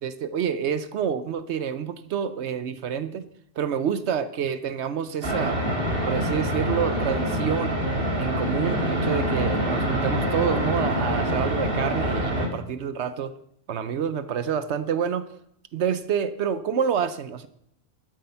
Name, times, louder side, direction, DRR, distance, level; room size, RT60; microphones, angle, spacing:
voice 1, 0.0-3.3 3.6-5.6 6.0-7.8 8.2-13.3 13.7-15.4 15.7-17.5, right 7 dB, 80° right, 12 dB, 1.0 m, -28 dB
sound 1, 5.2-12.5, equal, 55° right, 2.2 m, -25 dB
12.5 x 7.8 x 5.6 m, 0.71 s
omnidirectional pair, 1.1 m